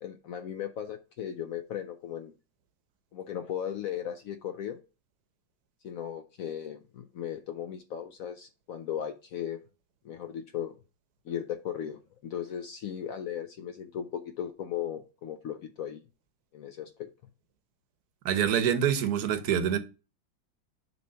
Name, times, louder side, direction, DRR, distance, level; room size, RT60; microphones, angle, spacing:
voice 1, 0.0-2.3 3.1-4.8 5.8-9.6 10.0-10.8 11.3-16.0 16.5-17.1, left 9 dB, 80° left, 0.7 m, -37 dB
voice 2, 18.2-19.8, right 9 dB, 60° right, 1.2 m, -26 dB
6.9 x 3.2 x 5.5 m
omnidirectional pair, 2.1 m